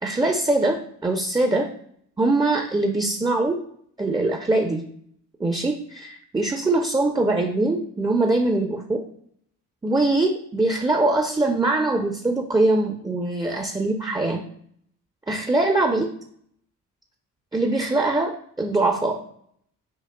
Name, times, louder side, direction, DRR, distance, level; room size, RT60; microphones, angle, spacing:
voice 1, 0.0-1.7 2.2-3.6 4.0-4.8 5.4-9.0 9.8-14.4 15.3-16.1 17.5-19.2, right 2 dB, 10° right, 3 dB, 0.6 m, -22 dB
6.0 x 2.3 x 2.3 m, 0.67 s
hypercardioid pair, 40°, 44 cm